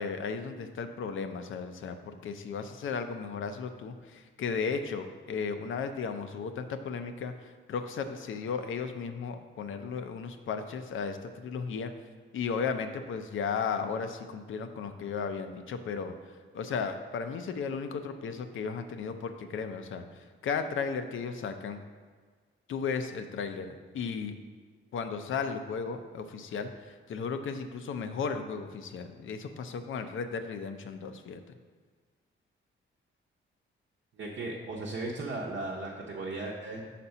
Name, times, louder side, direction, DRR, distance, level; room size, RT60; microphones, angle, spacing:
voice 1, 0.0-11.9 12.3-16.1 16.5-20.0 20.4-21.8 22.7-24.4 24.9-31.4, left 5 dB, 70° left, 8 dB, 0.6 m, -35 dB
voice 2, 34.1-36.8, right 2 dB, 60° right, -3 dB, 0.8 m, -36 dB
5.9 x 4.2 x 5.4 m, 1.5 s
wide cardioid pair, 145°, 21 cm